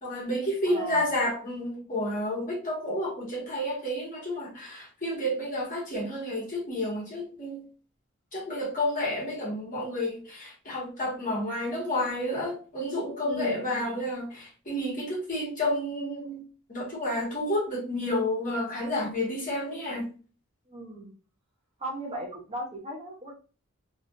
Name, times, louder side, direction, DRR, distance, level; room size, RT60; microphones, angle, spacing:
voice 1, 0.0-7.6 8.3-16.4 16.7-20.1 22.1-22.2, left 1 dB, 40° left, 1.9 m, -30 dB
voice 2, 0.7-1.1 13.2-14.0 20.7-21.1 21.8-23.3, equal, 30° right, 1.0 m, -37 dB
3.6 x 3.5 x 2.6 m
head